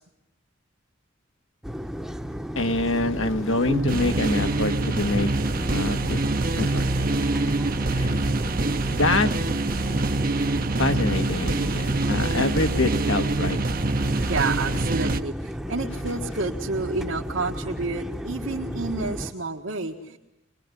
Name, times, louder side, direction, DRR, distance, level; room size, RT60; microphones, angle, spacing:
Airplane Interior, 1.6-19.3, equal, ahead, 1.0 m, -34 dB
voice 1, 2.6-5.3 5.7-6.2 6.6-6.9 7.9-8.3 8.9-9.3 10.8-13.6, left 2 dB, 75° left, 7 dB, 1.7 m, -25 dB
sound 1, 3.7-15.2, right 2 dB, 45° right, 0.9 m, -25 dB
voice 2, 14.1-20.2, right 3 dB, 75° right, -1 dB, 1.7 m, -30 dB
24.5 x 21.0 x 9.9 m, 0.88 s
head